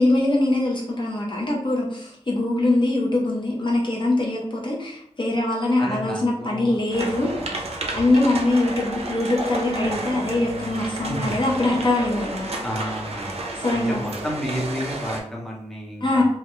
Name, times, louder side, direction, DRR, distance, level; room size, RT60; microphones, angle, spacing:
voice 1, 0.0-7.3 7.9-12.6 13.5-14.1 16.0-16.2, left 2 dB, 40° left, -3 dB, 0.5 m, -22 dB
voice 2, 5.8-6.8 7.2-7.5 7.8-8.0 11.1-11.2 12.6-13.4 13.7-16.2, equal, ahead, -4 dB, 0.7 m, -31 dB
sound 1, 6.9-15.2, right 2 dB, 60° right, 0.4 m, -31 dB
2.3 x 2.2 x 2.9 m, 0.73 s
wide cardioid pair, 90°, 12 cm